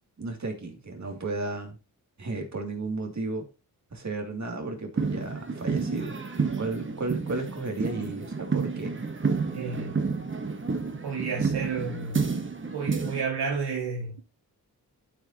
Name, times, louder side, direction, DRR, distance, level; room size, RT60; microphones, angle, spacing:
voice 1, 0.2-1.8 2.2-3.5 3.9-6.1 6.6-8.9, right 3 dB, 45° right, 2.6 m, -33 dB
sound 1, 5.0-13.2, right 4 dB, 30° right, 1.2 m, -30 dB
voice 2, 9.5-10.1 10.9-12.2 12.7-14.2, right 5 dB, 85° right, 1.7 m, -31 dB
12.0 x 5.0 x 2.9 m
cardioid pair, 55°, 38 cm